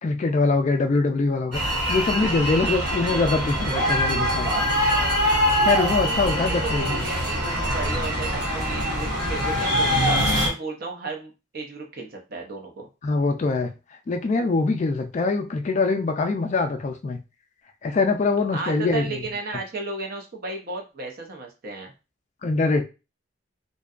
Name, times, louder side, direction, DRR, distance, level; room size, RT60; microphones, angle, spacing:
voice 1, 0.0-4.5 5.6-7.0 13.0-13.7 14.1-17.2 17.8-19.2 22.4-22.8, left 3 dB, 35° left, 6 dB, 0.3 m, -23 dB
sound 1, 1.5-10.5, equal, 65° right, 1.2 m, -23 dB
voice 2, 6.0-12.9 18.5-21.9, right 3 dB, 50° right, 1 dB, 0.6 m, -34 dB
2.6 x 2.2 x 2.4 m, 0.29 s
head